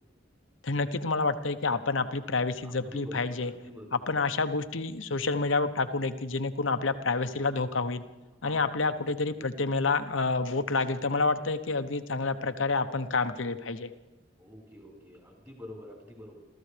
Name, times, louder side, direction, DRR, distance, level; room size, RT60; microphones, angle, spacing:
voice 1, 0.6-3.5 3.9-8.0 8.4-13.9, left 3 dB, 85° left, 9 dB, 0.9 m, -28 dB
voice 2, 2.6-4.0 8.4-8.9 14.4-16.3, left 1 dB, 20° right, -2 dB, 4.6 m, -46 dB
29.5 x 14.0 x 3.4 m, 1.0 s
head